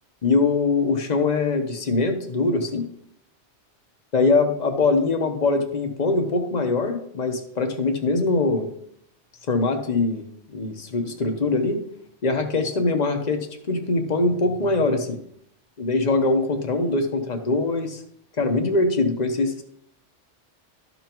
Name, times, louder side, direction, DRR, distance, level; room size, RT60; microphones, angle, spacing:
voice 1, 0.2-2.9 4.1-8.7 9.5-10.2 10.5-11.8 12.2-15.2 15.8-18.0 18.4-19.6, left 3 dB, 40° left, 6 dB, 1.0 m, -22 dB
12.5 x 5.4 x 3.0 m, 0.71 s
omnidirectional pair, 1.2 m